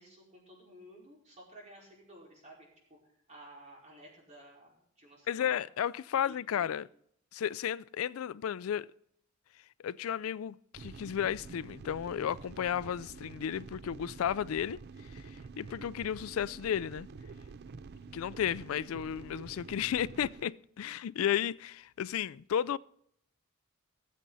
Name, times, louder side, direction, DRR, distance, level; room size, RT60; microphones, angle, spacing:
voice 1, 0.0-5.7 6.1-6.8, right 1 dB, 35° right, 4.8 m, -54 dB
voice 2, 5.3-6.9 7.3-8.9 9.8-14.8 15.1-15.3 15.6-17.1 18.1-22.8, left 9 dB, 75° left, 0.3 m, -33 dB
sound 1, 10.7-20.4, right 4 dB, 50° right, 0.4 m, -48 dB
19.5 x 7.4 x 4.0 m
head